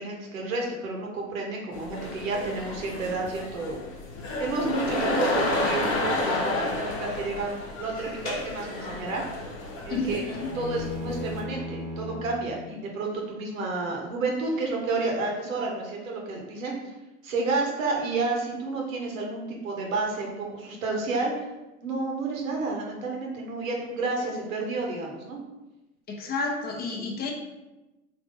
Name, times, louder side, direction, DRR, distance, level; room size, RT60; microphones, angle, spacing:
voice 1, 0.0-3.8 4.4-9.2 9.8-10.2 10.5-16.9 17.2-21.3 21.8-25.4, right 3 dB, 75° right, -1 dB, 1.3 m, -30 dB
sound 1, 1.7-11.4, left 2 dB, 50° left, 1.3 m, -31 dB
voice 2, 9.9-10.5 26.1-27.3, left 3 dB, 25° left, 0 dB, 0.8 m, -30 dB
sound 2, 10.3-12.5, left 2 dB, 40° right, 1.4 m, -36 dB
3.8 x 3.0 x 3.6 m, 1.0 s
hypercardioid pair, 105°, 41 cm